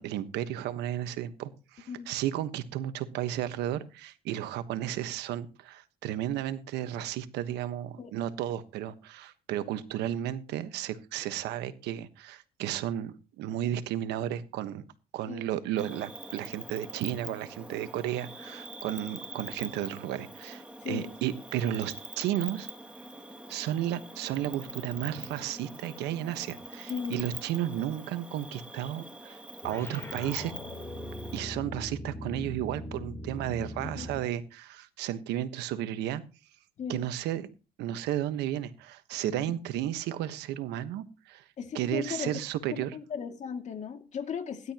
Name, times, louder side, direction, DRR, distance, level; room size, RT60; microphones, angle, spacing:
voice 1, 0.0-14.8 15.1-22.7 23.5-30.5 31.3-36.2 36.9-37.5 37.8-41.5 41.7-42.9, right 12 dB, 85° right, 1.3 m, -33 dB
Cricket, 15.8-31.4, right 1 dB, 5° right, 2.3 m, -44 dB
voice 2, 20.8-21.1 26.9-27.4 34.0-34.3 36.8-37.1 39.2-39.5 41.6-42.3 42.7-44.7, left 7 dB, 45° left, 2.4 m, -37 dB
sound 1, 29.6-34.4, left 1 dB, 15° left, 3.4 m, -40 dB
18.0 x 11.5 x 3.0 m
cardioid pair, 110°, 17 cm